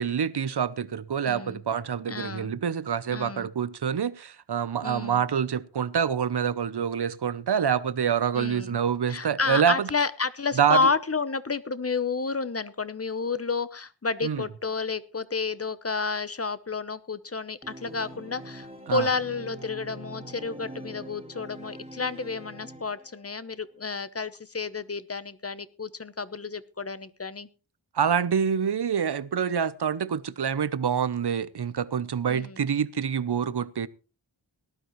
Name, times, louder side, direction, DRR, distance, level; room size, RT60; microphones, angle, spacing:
voice 1, 0.0-9.9 10.6-10.9 14.2-14.4 18.9-19.1 27.9-33.9, right 7 dB, 60° right, 0.8 m, -26 dB
voice 2, 1.3-1.6 2.1-2.5 3.1-3.5 4.8-5.2 8.4-8.8 9.1-27.5 32.3-32.6, left 4 dB, 30° left, 0.9 m, -30 dB
Organ, 17.6-23.4, right 1 dB, 15° right, 2.4 m, -44 dB
18.5 x 12.0 x 3.1 m
wide cardioid pair, 60°, 45 cm